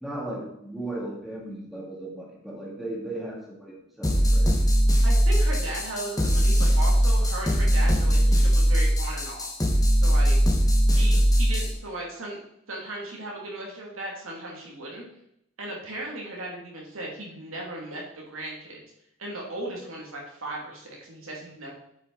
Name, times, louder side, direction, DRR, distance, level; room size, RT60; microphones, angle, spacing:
voice 1, 0.0-4.5 11.0-11.2, right 1 dB, ahead, -4 dB, 2.0 m, -36 dB
sound 1, 4.0-11.7, equal, 15° left, 1.3 m, -20 dB
voice 2, 5.0-9.5 10.0-10.4 10.9-12.4 12.7-15.0 15.6-18.8 19.2-21.7, right 2 dB, 85° right, -2 dB, 2.5 m, -36 dB
8.2 x 5.7 x 4.0 m, 0.76 s
head